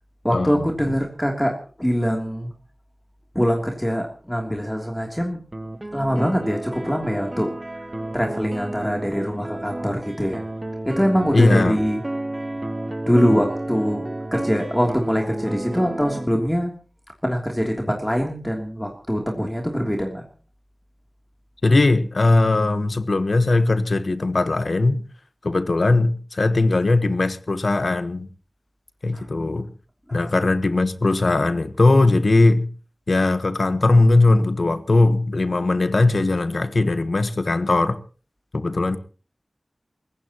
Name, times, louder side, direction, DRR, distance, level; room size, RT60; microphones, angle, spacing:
voice 1, 0.2-2.5 3.3-5.4 5.9-7.9 8.1-10.4 10.8-12.0 13.1-16.7 17.2-20.2 29.1-29.3 30.1-30.3, equal, 10° left, 3.1 m, -23 dB
sound 1, 5.5-16.3, right 1 dB, 30° right, 0.8 m, -31 dB
voice 2, 11.3-11.8 21.6-25.0 25.4-28.3 29.0-29.7 30.1-32.7 33.1-38.0 38.5-39.0, left 2 dB, 75° left, 1.3 m, -19 dB
28.5 x 16.0 x 3.0 m
wide cardioid pair, 45°, 0 cm